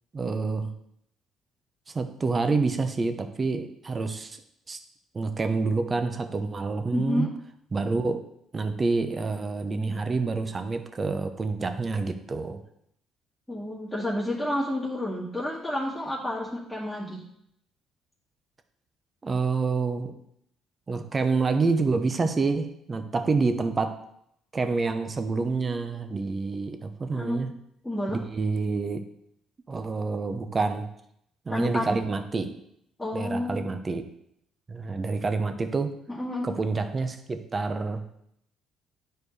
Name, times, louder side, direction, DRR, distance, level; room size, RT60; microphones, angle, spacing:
voice 1, 0.1-0.7 1.9-4.4 4.7-4.8 5.1-7.3 7.7-8.2 8.5-12.6 19.2-20.2 20.9-24.0 24.5-27.5 28.1-29.0 29.7-30.9 31.5-32.5 33.1-34.0 34.7-36.0 36.4-38.0, right 4 dB, 35° right, 7 dB, 0.9 m, -27 dB
voice 2, 6.9-7.3 13.5-17.2 27.1-27.4 27.8-28.2 31.5-32.0 33.0-33.7 36.1-36.5, left 1 dB, 10° left, -7 dB, 2.1 m, -30 dB
10.5 x 4.5 x 3.3 m, 0.74 s
supercardioid pair, 65°, 0 cm